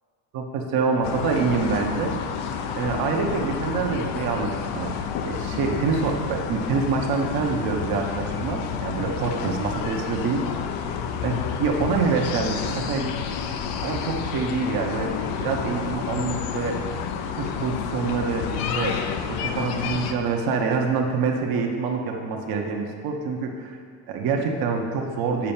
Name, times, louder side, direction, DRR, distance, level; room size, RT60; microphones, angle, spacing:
voice 1, 0.3-2.1 2.8-4.9 5.2-10.7 11.2-13.1 13.8-16.8 17.4-19.0 19.3-23.8 24.1-25.5, right 5 dB, 60° right, 1 dB, 1.3 m, -26 dB
sound 1, 1.0-20.1, left 7 dB, 75° left, 0.9 m, -30 dB
7.4 x 5.7 x 7.3 m, 2.2 s
cardioid pair, 130°, 40 cm